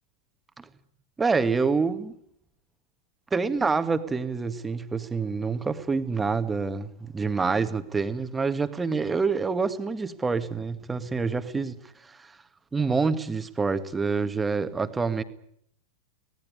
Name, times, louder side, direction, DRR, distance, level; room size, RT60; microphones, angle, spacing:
voice 1, 1.2-2.1 3.3-12.3 12.7-15.2, right 4 dB, 15° right, 9 dB, 1.7 m, -27 dB
24.5 x 18.5 x 9.9 m, 0.72 s
figure-of-eight pair, 90°, 0 cm